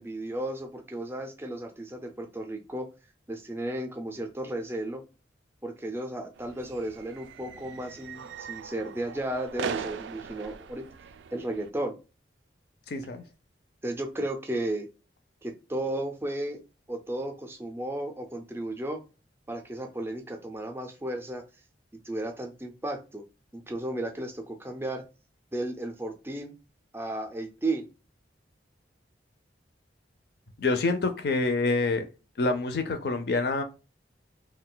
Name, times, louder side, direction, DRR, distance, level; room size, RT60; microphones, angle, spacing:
voice 1, 0.0-2.9 3.3-5.0 5.6-10.8 11.3-11.9 13.8-14.9 15.4-16.6 16.9-19.0 19.5-21.4 22.0-23.2 23.5-25.0 25.5-26.5 26.9-27.9, right 1 dB, 15° right, 0.4 m, -34 dB
sound 1, 6.4-11.7, right 7 dB, 80° right, 0.3 m, -40 dB
voice 2, 12.9-13.2 30.6-32.1 32.4-33.6, left 3 dB, 60° left, 0.5 m, -26 dB
2.3 x 2.2 x 3.8 m
head